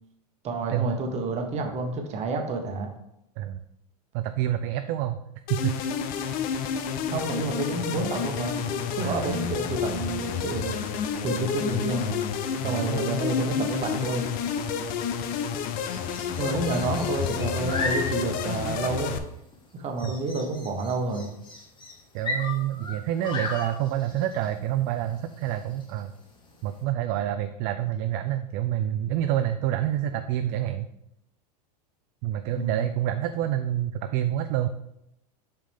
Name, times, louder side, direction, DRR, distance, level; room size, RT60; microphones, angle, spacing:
voice 1, 0.4-2.9 7.1-12.2 12.6-14.3 16.4-19.2 19.7-21.3 32.5-32.9, right 3 dB, 35° right, 4 dB, 1.2 m, -29 dB
voice 2, 4.1-5.2 5.5-5.8 9.0-9.4 12.6-12.9 20.0-20.1 22.1-26.1 26.6-30.9 32.2-34.7, right 12 dB, 50° right, 9 dB, 0.4 m, -27 dB
sound 1, 5.5-19.2, left 7 dB, 45° left, 0.6 m, -30 dB
sound 2, 10.2-26.8, left 2 dB, 25° left, 1.5 m, -39 dB
5.8 x 5.0 x 3.6 m, 0.80 s
hypercardioid pair, 115°, 20 cm